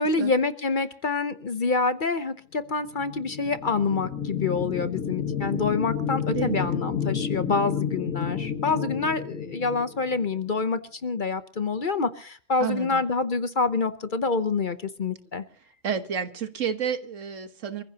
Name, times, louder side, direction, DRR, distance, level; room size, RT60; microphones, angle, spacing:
voice 1, 0.0-15.4, left 4 dB, 45° left, 0.9 m, -27 dB
sound 1, 2.8-10.5, left 7 dB, 85° left, 2.0 m, -31 dB
voice 2, 6.3-6.7 12.6-13.0 15.8-17.8, right 7 dB, 75° right, 1.6 m, -30 dB
27.5 x 15.0 x 2.9 m
omnidirectional pair, 1.3 m